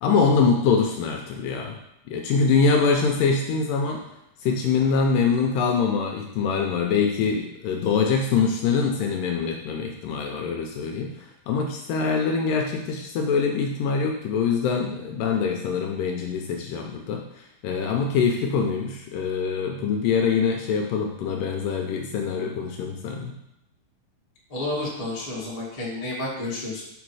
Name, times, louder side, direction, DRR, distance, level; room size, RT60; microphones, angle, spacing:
voice 1, 0.0-1.8 2.1-4.0 4.4-11.1 11.5-17.3 17.6-23.4, left 5 dB, 80° left, 2 dB, 2.1 m, -24 dB
voice 2, 24.5-26.8, left 2 dB, 30° left, -6 dB, 0.7 m, -30 dB
6.0 x 5.0 x 4.7 m, 0.85 s
omnidirectional pair, 4.3 m